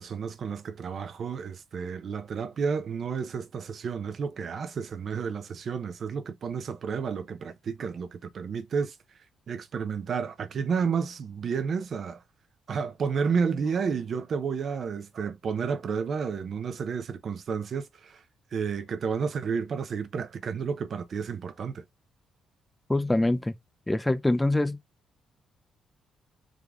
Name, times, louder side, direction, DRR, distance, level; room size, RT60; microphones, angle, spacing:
voice 1, 0.0-8.9 9.5-12.2 12.7-18.2 18.5-21.8, right 6 dB, 55° right, 0.7 m, -31 dB
voice 2, 22.9-23.5 23.9-24.8, left 1 dB, 10° left, 0.5 m, -24 dB
3.8 x 3.3 x 3.4 m
cardioid pair, 90°, 0 cm